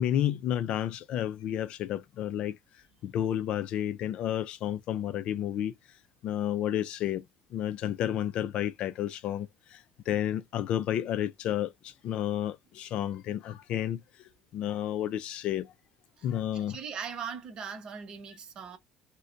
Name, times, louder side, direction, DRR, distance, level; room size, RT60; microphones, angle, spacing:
voice 1, 0.0-2.6 3.0-5.8 6.2-7.2 7.5-15.7 16.2-16.8, left 11 dB, 60° left, 0.4 m, -31 dB
voice 2, 16.5-18.8, right 6 dB, 45° right, 0.9 m, -40 dB
2.5 x 2.2 x 3.9 m
cardioid pair, 120°, 2 cm